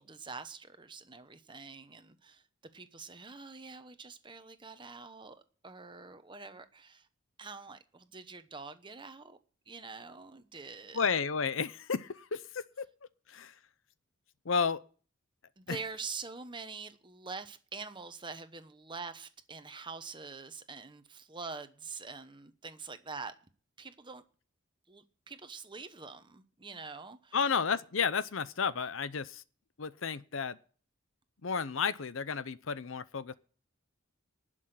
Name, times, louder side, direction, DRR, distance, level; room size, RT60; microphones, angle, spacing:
voice 1, 0.0-2.4 2.7-7.1 7.4-9.4 9.7-11.1 15.6-23.3 23.8-24.2 24.9-27.4, right 4 dB, 20° right, 1.0 m, -45 dB
voice 2, 10.9-12.9 13.3-13.5 14.4-14.8 15.7-15.8 27.3-29.4 29.8-30.6 31.4-33.3, left 6 dB, 65° left, 0.7 m, -32 dB
11.5 x 6.3 x 9.4 m
head